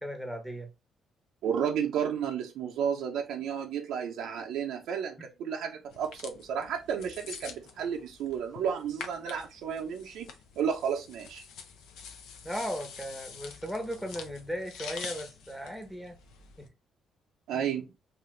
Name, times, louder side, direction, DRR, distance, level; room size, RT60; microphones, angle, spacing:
voice 1, 0.0-0.7 5.2-5.3 12.4-16.2 16.6-16.7, equal, 5° left, 0.9 m, -37 dB
voice 2, 1.4-10.3 10.6-11.4 17.5-17.9, right 8 dB, 80° right, 0.5 m, -32 dB
sound 1, 5.9-16.7, left 6 dB, 90° left, 0.6 m, -46 dB
2.8 x 2.4 x 3.1 m
cardioid pair, 90°, 0 cm